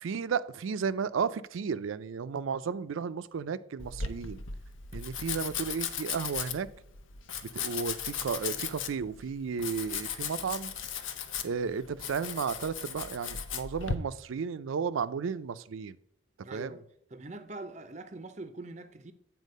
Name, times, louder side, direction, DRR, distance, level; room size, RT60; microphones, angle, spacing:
voice 1, 0.0-4.4 4.9-6.7 7.5-10.7 11.4-16.0 16.5-16.8, right 6 dB, 85° right, 0.4 m, -33 dB
Domestic sounds home sounds, 3.8-14.0, left 7 dB, 80° left, 0.7 m, -37 dB
voice 2, 16.4-19.1, right 2 dB, 35° right, 0.5 m, -43 dB
8.2 x 4.4 x 5.3 m
head